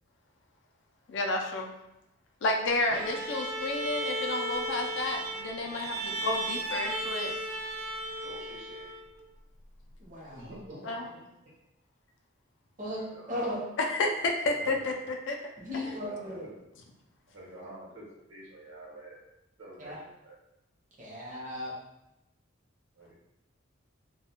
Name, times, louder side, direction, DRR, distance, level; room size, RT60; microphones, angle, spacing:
voice 1, 1.1-1.7 2.4-7.3 10.8-11.1 13.9-15.4 15.7-16.0, left 2 dB, 60° left, 2 dB, 0.3 m, -31 dB
Bowed string instrument, 2.9-9.2, right 1 dB, 90° right, 0.3 m, -35 dB
voice 2, 8.2-8.9 10.3-10.9 13.0-13.5 14.5-14.8 15.8-16.5 17.3-19.2 19.6-20.3 23.0-23.1, right 1 dB, 70° right, -5 dB, 1.0 m, -47 dB
voice 3, 10.0-10.5 12.8-13.6 15.6-16.5 19.8-20.0 21.0-21.7, left 1 dB, 40° right, -5 dB, 0.7 m, -36 dB
2.3 x 2.1 x 2.8 m, 0.89 s
head